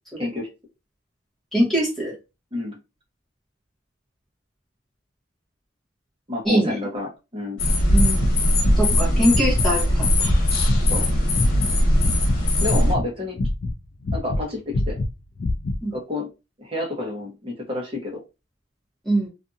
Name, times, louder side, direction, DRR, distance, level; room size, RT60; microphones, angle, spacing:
voice 1, 0.2-0.5 2.5-2.7 6.3-7.6 10.9-11.1 12.6-13.4 14.1-15.0 15.9-16.3 16.6-18.2, left 2 dB, 25° right, -1 dB, 1.0 m, -29 dB
voice 2, 1.5-2.1 6.4-6.8 7.9-8.3 8.8-10.1 11.9-12.2 15.8-15.9 19.0-19.3, right 1 dB, ahead, -6 dB, 1.0 m, -22 dB
sound 1, 7.6-12.9, left 1 dB, 85° left, 1.0 m, -20 dB
sound 2, 7.9-9.0 9.3-9.7 10.0-12.4 12.7-14.4 14.7-15.8, left 2 dB, 45° left, 0.3 m, -25 dB
2.6 x 2.3 x 2.6 m, 0.27 s
head